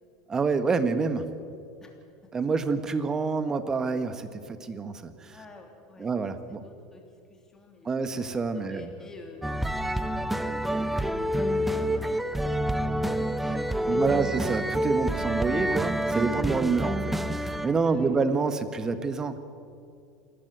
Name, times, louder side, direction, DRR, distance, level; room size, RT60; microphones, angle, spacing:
voice 1, 0.3-1.3 2.3-5.4 6.0-6.6 7.8-8.9 13.9-19.4, right 4 dB, 25° right, 10 dB, 1.6 m, -27 dB
voice 2, 5.3-6.1 6.5-7.9 8.3-9.8 10.1-11.6 11.9-14.2 16.3-16.5 17.8-18.2, left 2 dB, 20° left, 2 dB, 3.2 m, -48 dB
sound 1, 9.4-17.8, right 1 dB, 5° right, 0.9 m, -28 dB
28.0 x 12.0 x 8.2 m, 2.4 s
hypercardioid pair, 95°, 2 cm